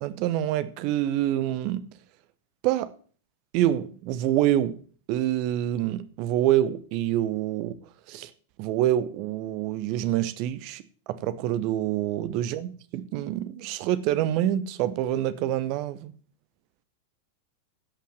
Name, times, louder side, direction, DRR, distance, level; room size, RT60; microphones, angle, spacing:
voice 1, 0.0-1.9 2.6-2.9 3.5-4.8 5.1-7.8 8.1-8.3 8.6-10.8 11.1-16.1, right 12 dB, 45° right, 0.9 m, -26 dB
16.5 x 5.7 x 7.7 m
figure-of-eight pair, 90°, 0 cm